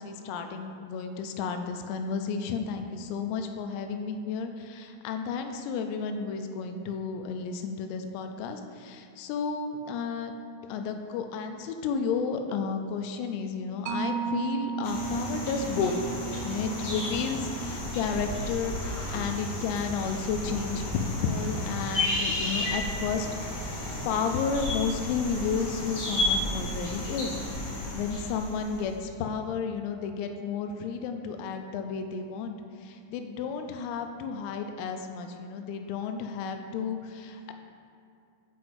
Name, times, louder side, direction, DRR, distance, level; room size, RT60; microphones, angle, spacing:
voice 1, 0.0-10.3 10.7-16.0 16.4-23.8 24.1-27.3 27.9-32.6 32.8-37.5, left 5 dB, 85° left, 5 dB, 3.2 m, -32 dB
Mallet percussion, 13.9-20.9, right 6 dB, 85° right, 2.8 m, -37 dB
sound 1, 14.8-29.0, left 1 dB, 65° left, 1.8 m, -33 dB
9.0 x 5.8 x 2.6 m, 2.5 s
omnidirectional pair, 6.0 m